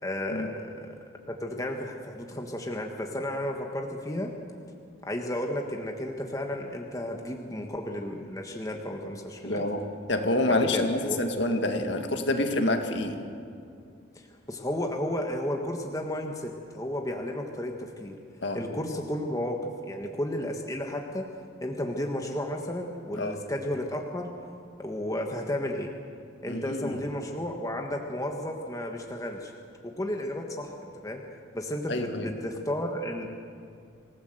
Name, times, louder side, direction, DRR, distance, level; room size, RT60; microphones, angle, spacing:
voice 1, 0.0-0.7 1.3-4.3 5.0-9.6 10.5-11.2 14.5-18.2 18.5-19.6 19.9-21.3 21.6-24.3 24.8-25.9 26.4-29.5 29.8-31.2 31.5-33.3, left 1 dB, 15° left, 2 dB, 1.5 m, -33 dB
voice 2, 9.4-13.2 18.4-18.6 23.2-23.4 26.5-27.0 31.9-32.3, left 2 dB, 60° left, 5 dB, 2.1 m, -27 dB
26.5 x 16.5 x 7.9 m, 2.3 s
head